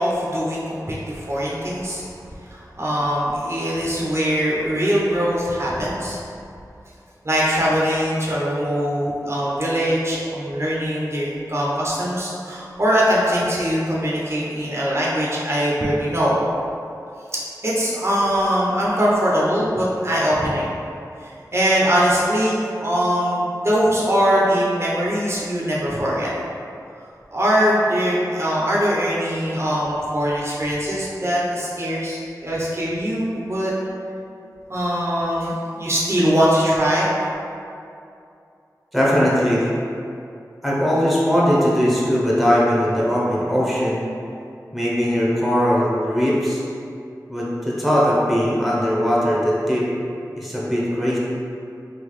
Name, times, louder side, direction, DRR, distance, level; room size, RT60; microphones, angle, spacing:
voice 1, 0.0-2.0 2.4-6.2 7.2-16.4 17.6-20.7 21.2-26.3 27.3-33.7 34.7-37.1, equal, 40° right, -6 dB, 0.6 m, -21 dB
voice 2, 38.9-39.7 40.6-44.0 44.7-46.6 47.3-49.9 50.3-51.2, equal, ahead, -6 dB, 0.7 m, -19 dB
3.8 x 2.3 x 3.1 m, 2.6 s
wide cardioid pair, 70°, 7 cm